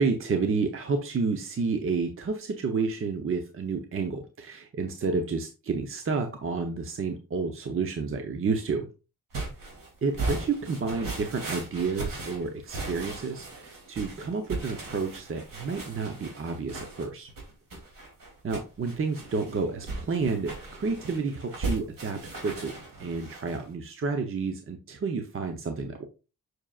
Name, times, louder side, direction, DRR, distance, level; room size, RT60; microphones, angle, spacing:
voice 1, 0.0-8.9 10.0-17.3 18.4-22.7 23.0-26.0, right 4 dB, 35° right, 5 dB, 0.7 m, -30 dB
sound 1, 9.3-23.6, right 2 dB, 65° right, 2.8 m, -37 dB
7.4 x 6.3 x 2.4 m, 0.31 s
wide cardioid pair, 165°, 35 cm